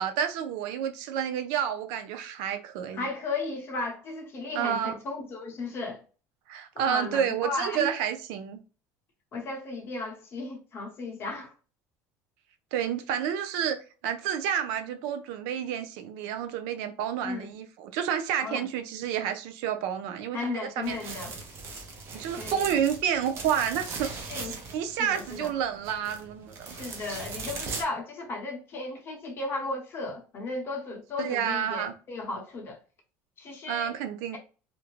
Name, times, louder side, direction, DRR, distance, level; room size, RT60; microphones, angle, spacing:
voice 1, 0.0-3.1 4.5-4.9 6.5-8.6 12.7-13.8 14.0-21.2 22.1-24.1 24.4-26.8 31.2-31.9 33.7-34.4, right 9 dB, 85° right, 0.4 m, -30 dB
voice 2, 2.9-6.0 6.8-7.9 9.3-11.5 17.2-17.5 18.4-18.7 20.3-21.3 22.4-22.6 24.3-24.6 25.0-25.5 26.6-32.8 33.4-33.9, left 3 dB, 35° left, 0.8 m, -35 dB
sound 1, 20.8-27.8, right 4 dB, 35° right, 0.6 m, -39 dB
2.5 x 2.1 x 3.0 m
cardioid pair, 155°, 7 cm